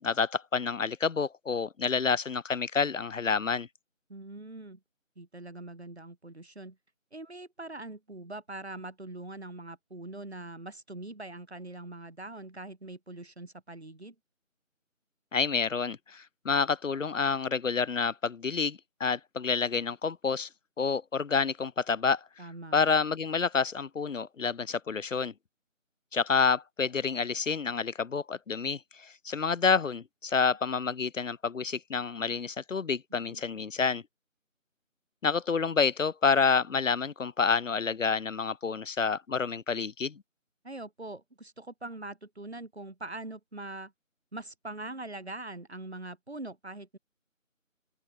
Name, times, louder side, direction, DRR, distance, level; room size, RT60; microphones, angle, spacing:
voice 1, 0.0-3.7 15.3-20.5 20.8-22.2 22.7-25.3 26.1-34.0 35.2-40.2, left 5 dB, 70° left, 0.6 m, -28 dB
voice 2, 4.1-4.8 5.1-6.8 7.1-14.1 22.4-22.7 33.1-33.4 40.6-43.9 44.3-47.0, right 2 dB, 50° right, 3.4 m, -42 dB
open air
figure-of-eight pair, 175°, 40 cm